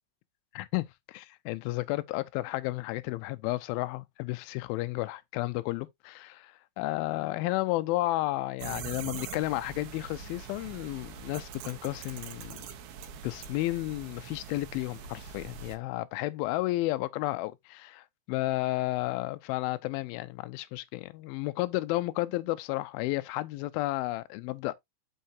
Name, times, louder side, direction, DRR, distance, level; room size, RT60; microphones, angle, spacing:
voice 1, 0.5-12.7 13.2-24.7, left 18 dB, 80° left, 2.3 m, -32 dB
sound 1, 8.6-15.8, right 7 dB, 85° right, 2.8 m, -43 dB
6.4 x 5.6 x 2.6 m
omnidirectional pair, 4.4 m